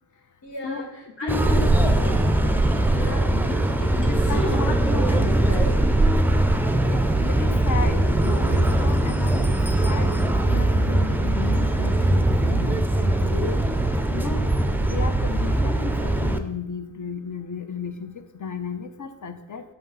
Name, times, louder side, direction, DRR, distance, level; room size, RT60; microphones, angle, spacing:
voice 1, 0.4-2.4 2.9-3.4 3.8-5.8 8.7-8.9, left 2 dB, 85° left, 0 dB, 1.6 m, -35 dB
voice 2, 1.2-1.7 3.3-3.4 4.1-4.8 6.9-9.5 9.8-13.6 14.1-14.5 14.8-19.6, left 5 dB, 45° left, 9 dB, 0.8 m, -34 dB
sound 1, 1.3-16.4, right 1 dB, 5° right, 0.5 m, -21 dB
5.7 x 3.5 x 5.6 m, 0.95 s
cardioid pair, 65°, 42 cm